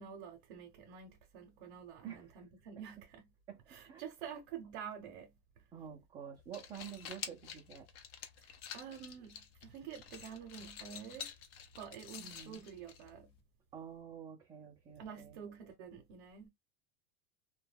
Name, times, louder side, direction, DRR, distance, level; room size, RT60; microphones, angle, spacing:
voice 1, 0.0-3.3 3.7-5.6 8.4-11.3 11.8-13.3 15.0-16.5, right 8 dB, 60° right, 0.7 m, -49 dB
voice 2, 2.0-2.4 3.5-4.0 5.7-7.9 12.2-12.6 13.7-15.4, right 8 dB, 15° right, 0.3 m, -49 dB
sound 1, 6.3-13.4, left 8 dB, 70° left, 0.7 m, -49 dB
2.2 x 2.1 x 3.2 m
supercardioid pair, 165°, 31 cm